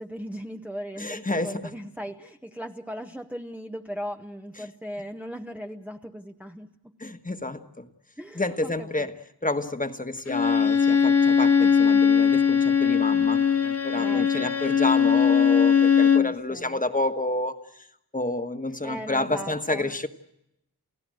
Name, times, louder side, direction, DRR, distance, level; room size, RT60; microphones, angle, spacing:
voice 1, 0.0-6.7 8.2-9.1 13.9-14.5 16.1-16.8 18.8-19.9, equal, 5° right, 4 dB, 0.9 m, -38 dB
voice 2, 1.0-1.7 7.0-7.9 8.3-17.6 18.1-20.1, left 2 dB, 20° left, 8 dB, 1.4 m, -29 dB
Bowed string instrument, 10.3-16.3, left 7 dB, 40° left, 0.9 m, -20 dB
29.5 x 16.0 x 7.7 m, 0.83 s
wide cardioid pair, 75°, 37 cm